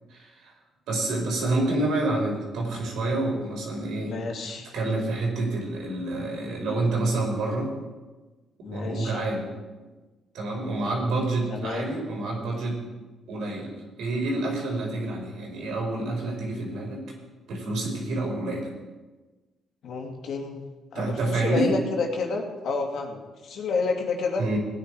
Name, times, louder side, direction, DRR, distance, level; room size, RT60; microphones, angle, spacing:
voice 1, 0.1-0.5 0.9-4.1 4.7-7.7 8.7-9.5 10.3-12.8 13.3-17.0 17.5-18.7 20.9-21.7 24.4-24.6, right 2 dB, 80° right, -1 dB, 4.7 m, -28 dB
voice 2, 4.0-4.7 8.6-9.2 11.5-11.9 19.8-20.6 20.9-24.4, left 4 dB, 70° left, 2 dB, 2.6 m, -30 dB
17.5 x 9.7 x 4.8 m, 1.2 s
cardioid pair, 90°, 0 cm